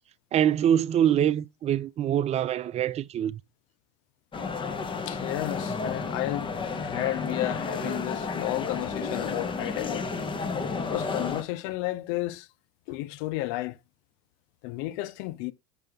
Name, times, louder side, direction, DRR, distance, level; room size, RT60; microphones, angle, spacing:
voice 1, 0.3-3.4, right 10 dB, 35° right, 0.5 m, -24 dB
sound 1, 4.3-11.4, left 4 dB, 25° left, 1.3 m, -32 dB
voice 2, 5.1-10.1 10.8-12.5 12.9-13.8 14.6-15.5, left 17 dB, 60° left, 0.7 m, -32 dB
6.4 x 6.0 x 3.6 m
hypercardioid pair, 85°, 19 cm